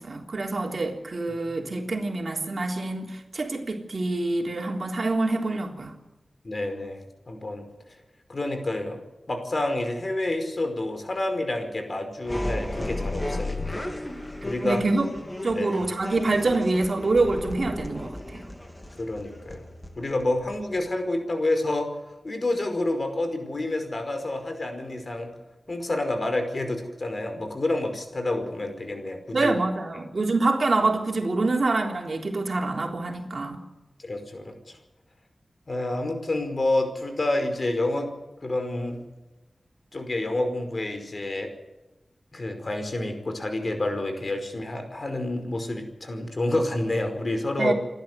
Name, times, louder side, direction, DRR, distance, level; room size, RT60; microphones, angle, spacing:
voice 1, 0.0-6.0 14.6-15.1 15.4-18.4 29.3-33.6 47.6-47.7, right 2 dB, 60° right, 3.6 m, -26 dB
voice 2, 6.4-7.7 8.3-9.0 9.3-13.9 14.4-14.8 15.5-15.7 19.0-19.6 20.0-21.9 22.2-25.3 25.7-29.5 29.9-30.0 34.0-34.8 35.7-38.1 38.4-39.0 39.9-41.5 42.3-47.7, left 2 dB, 50° left, 5.1 m, -28 dB
sound 1, 12.2-20.9, left 1 dB, 20° left, 3.2 m, -34 dB
28.5 x 12.0 x 8.1 m
wide cardioid pair, 60°, 0 cm